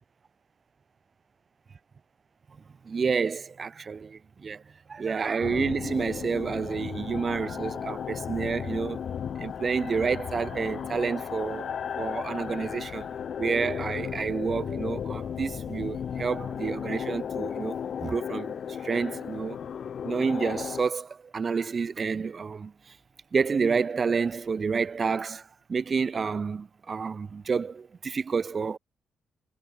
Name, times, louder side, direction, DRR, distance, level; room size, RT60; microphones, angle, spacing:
voice 1, 2.8-4.6 4.9-9.0 9.4-13.1 13.4-18.6 18.8-19.6 20.0-22.7 23.3-28.8, right 5 dB, 40° right, 3.4 m, -29 dB
sound 1, 5.4-20.8, left 8 dB, 55° left, 2.4 m, -35 dB
cardioid pair, 90°, 0 cm